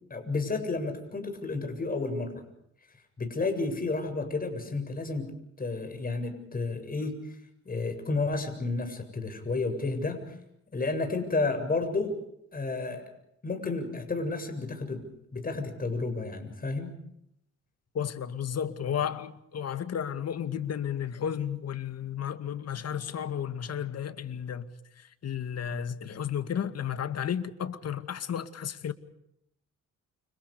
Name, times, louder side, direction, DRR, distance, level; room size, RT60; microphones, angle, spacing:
voice 1, 0.1-2.4 3.2-7.4 7.7-10.3 10.7-12.2 12.5-13.0 13.4-15.0 15.3-16.9, left 3 dB, 30° left, 7.6 m, -31 dB
voice 2, 17.9-24.7 25.2-28.9, left 8 dB, 55° left, 2.3 m, -33 dB
29.5 x 27.0 x 5.1 m
cardioid pair, 90°, 30 cm